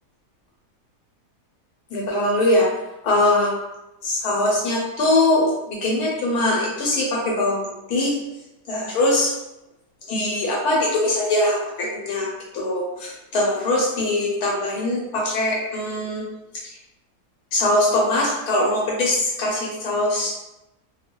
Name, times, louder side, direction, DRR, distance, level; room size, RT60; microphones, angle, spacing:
voice 1, 1.9-2.7 3.0-3.5 4.0-7.6 7.9-8.2 8.7-9.3 10.1-12.3 12.5-16.2 17.5-20.3, left 1 dB, 75° left, -3 dB, 1.1 m, -22 dB
2.5 x 2.2 x 2.8 m, 0.94 s
omnidirectional pair, 1.7 m